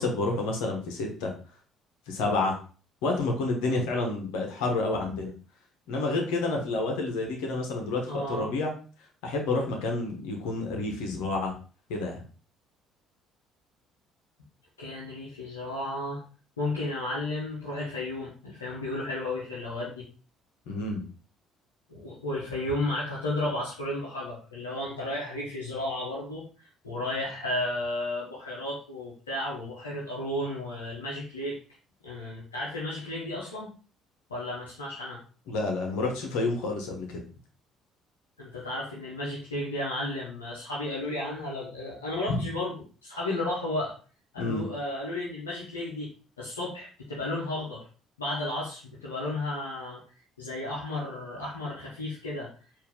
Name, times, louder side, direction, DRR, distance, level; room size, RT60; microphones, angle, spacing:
voice 1, 0.0-1.3 2.1-2.6 3.0-5.3 5.9-8.7 9.2-11.5 11.9-12.2 20.7-21.0 35.5-37.1 42.3-42.4 44.4-44.6, left 3 dB, 70° left, 1 dB, 1.2 m, -29 dB
voice 2, 8.1-8.5 14.8-16.2 16.6-20.1 21.9-31.6 32.0-33.7 34.3-35.2 38.4-43.9 44.3-46.1 46.4-47.9 48.2-50.0 50.4-52.5, left 1 dB, 90° left, -5 dB, 0.9 m, -33 dB
4.6 x 2.8 x 3.5 m, 0.38 s
hypercardioid pair, 55°, 0 cm